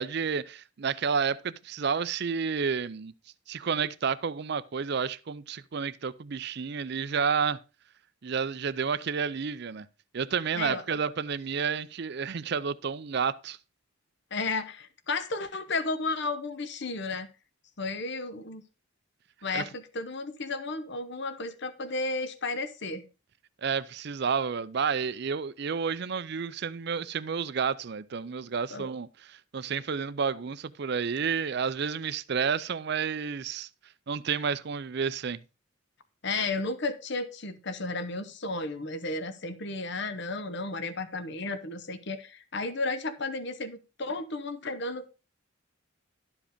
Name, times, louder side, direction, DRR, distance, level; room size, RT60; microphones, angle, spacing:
voice 1, 0.0-3.1 3.5-7.6 8.2-9.9 10.1-13.6 19.5-19.7 23.6-33.7 34.1-35.4, right 6 dB, 50° right, 0.5 m, -30 dB
voice 2, 14.3-17.3 17.8-18.6 19.4-23.1 28.7-28.9 36.2-45.1, left 3 dB, 55° left, 0.9 m, -33 dB
12.0 x 5.0 x 5.0 m
head